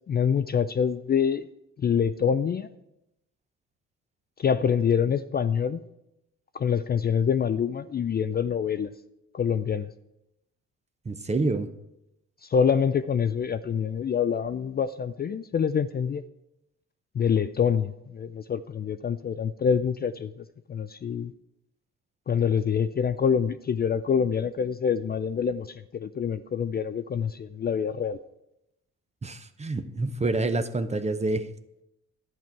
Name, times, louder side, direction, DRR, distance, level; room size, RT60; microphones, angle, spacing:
voice 1, 0.1-1.5 1.8-2.7 4.4-5.8 6.5-8.9 9.3-9.9 12.4-16.2 17.1-21.3 22.3-28.2, left 7 dB, 35° left, 11 dB, 0.4 m, -26 dB
voice 2, 11.1-11.7 29.2-31.5, right 2 dB, 20° right, 10 dB, 0.8 m, -27 dB
11.0 x 8.8 x 4.6 m, 0.86 s
cardioid pair, 90°, 30 cm